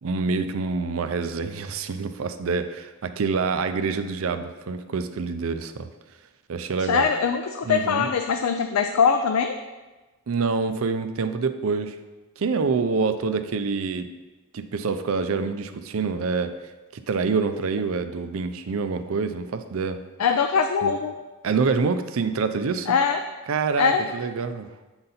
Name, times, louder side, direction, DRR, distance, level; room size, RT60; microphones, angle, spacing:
voice 1, 0.0-5.9 6.5-7.1 7.6-8.1 10.3-12.0 12.4-14.1 14.5-16.5 17.1-20.0 20.8-20.9 21.4-22.9 23.5-24.7, right 4 dB, 70° right, 9 dB, 0.5 m, -26 dB
voice 2, 6.8-9.6 20.2-21.1 22.9-23.2 23.8-24.0, left 6 dB, 90° left, 6 dB, 0.4 m, -22 dB
7.8 x 4.0 x 4.2 m, 1.2 s
head